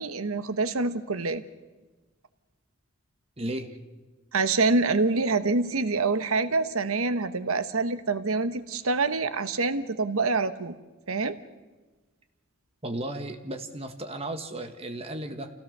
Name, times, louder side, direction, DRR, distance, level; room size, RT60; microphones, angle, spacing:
voice 1, 0.0-1.4 4.3-10.8 11.1-11.4, right 3 dB, 90° right, 11 dB, 1.1 m, -26 dB
voice 2, 3.4-3.7 12.8-15.5, right 1 dB, 30° right, 6 dB, 1.7 m, -34 dB
27.5 x 17.0 x 6.7 m, 1.2 s
head